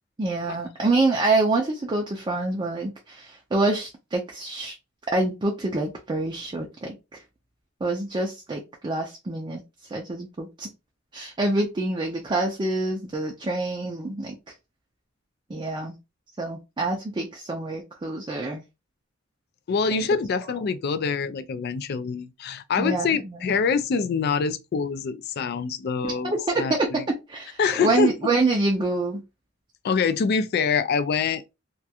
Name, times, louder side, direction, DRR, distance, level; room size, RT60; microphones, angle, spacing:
voice 1, 0.2-4.7 5.1-6.9 7.8-9.6 9.9-10.7 11.1-14.4 15.5-16.0 16.4-18.6 19.9-20.0 22.8-23.4 26.2-29.2, right 2 dB, 25° right, 0.4 m, -26 dB
voice 2, 19.7-27.0 27.6-28.1 29.8-31.4, left 5 dB, 50° left, 0.3 m, -25 dB
2.3 x 2.2 x 2.7 m
head